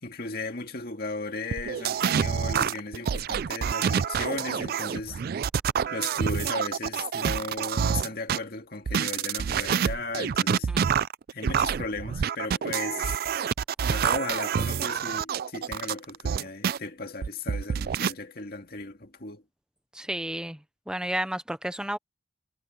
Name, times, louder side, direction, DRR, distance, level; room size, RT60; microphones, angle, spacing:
voice 1, 0.0-5.2 5.9-10.7 11.3-13.1 13.8-19.4, left 3 dB, 55° left, 2.2 m, -36 dB
sound 1, 1.5-8.4 8.9-16.8 17.2-18.1, right 7 dB, 55° right, 0.3 m, -27 dB
voice 2, 19.9-20.6 20.9-22.0, right 1 dB, 5° right, 0.6 m, -32 dB
head